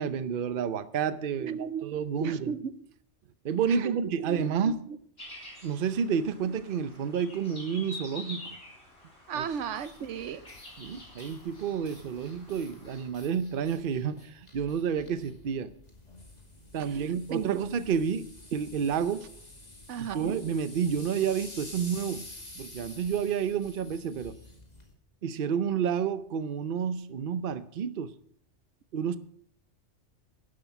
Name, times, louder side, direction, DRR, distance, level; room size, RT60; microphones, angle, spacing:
voice 1, 0.0-2.5 3.4-4.8 5.6-8.6 9.3-9.5 10.8-15.7 16.7-19.2 20.0-22.2 22.5-24.4 25.2-28.1 28.9-29.2, right 7 dB, 55° right, 13 dB, 0.8 m, -30 dB
voice 2, 1.4-1.9 2.2-2.7 3.7-4.7 9.3-10.5 16.8-17.6 19.9-20.4, right 7 dB, 85° right, 14 dB, 1.1 m, -35 dB
sound 1, 5.2-13.1, left 2 dB, 65° left, 4.1 m, -48 dB
sound 2, 9.4-24.9, left 2 dB, 35° left, 2.4 m, -49 dB
11.5 x 11.5 x 5.9 m, 0.63 s
omnidirectional pair, 1.2 m